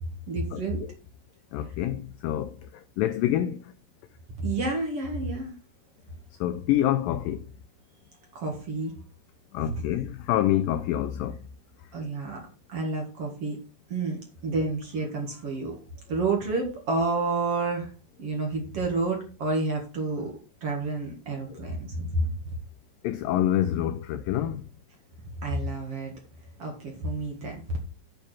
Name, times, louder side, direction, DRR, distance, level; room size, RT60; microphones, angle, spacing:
voice 1, 0.3-0.9 4.4-5.5 8.3-8.9 9.6-9.7 11.9-12.4 12.7-13.6 13.9-15.8 16.1-17.9 18.2-20.3 20.6-22.3 25.4-26.1 26.6-27.6, right 3 dB, 50° right, 2.1 m, -29 dB
voice 2, 1.5-3.7 6.4-7.4 9.5-11.4 21.5-21.6 23.0-24.6, left 12 dB, 90° left, 1.9 m, -27 dB
9.1 x 4.9 x 6.1 m
omnidirectional pair, 4.6 m